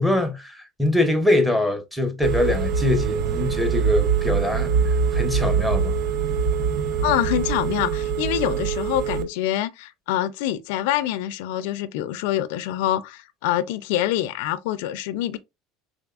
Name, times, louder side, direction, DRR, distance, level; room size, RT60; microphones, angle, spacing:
voice 1, 0.0-6.0, left 1 dB, 5° right, 0.7 m, -23 dB
Telephone, 2.2-9.2, right 6 dB, 55° right, 0.6 m, -23 dB
voice 2, 7.0-15.4, left 13 dB, 80° left, 0.4 m, -25 dB
3.6 x 3.5 x 2.3 m
cardioid pair, 140°, 0 cm